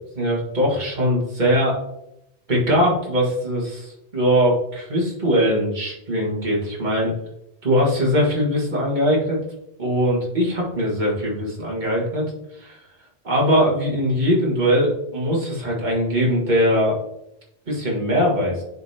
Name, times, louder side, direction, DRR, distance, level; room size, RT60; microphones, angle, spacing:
voice 1, 0.0-1.8 2.5-7.1 7.6-9.4 9.8-12.3 12.6-12.8 13.2-17.0 17.7-18.6, equal, 45° right, -3 dB, 1.8 m, -21 dB
10.0 x 3.7 x 2.8 m, 0.84 s
omnidirectional pair, 1.1 m